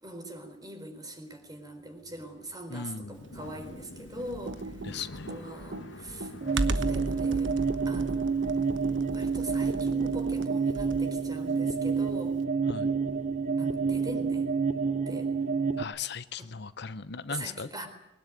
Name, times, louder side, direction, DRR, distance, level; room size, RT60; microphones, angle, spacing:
voice 1, 0.0-4.7 5.3-7.6 7.9-8.4 9.1-12.4 13.6-14.5 15.1-15.3 16.4-16.5 17.3-17.9, right 1 dB, 20° right, 7 dB, 4.2 m, -42 dB
sound 1, 1.5-11.6 11.9-12.7, left 1 dB, 85° left, 2.2 m, -49 dB
voice 2, 2.7-3.2 4.8-5.4 12.7-12.9 15.8-17.7, left 5 dB, 65° left, 13 dB, 0.8 m, -38 dB
Computer keyboard, 4.3-11.2, right 2 dB, 75° right, 1.2 m, -35 dB
sound 2, 6.4-15.8, right 5 dB, 45° right, 0.8 m, -28 dB
21.5 x 20.0 x 9.5 m, 0.86 s
head